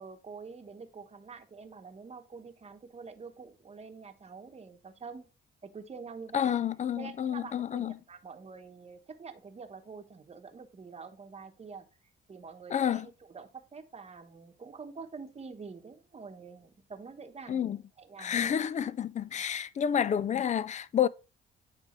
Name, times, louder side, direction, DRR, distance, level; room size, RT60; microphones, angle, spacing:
voice 1, 0.0-5.3 5.6-6.6 7.0-11.9 12.3-18.6, right 5 dB, 30° right, 1.0 m, -46 dB
voice 2, 6.3-8.0 12.7-13.1 17.5-17.8 18.2-21.1, left 9 dB, 35° left, 0.4 m, -29 dB
9.3 x 3.4 x 3.1 m
cardioid pair, 90°, 20 cm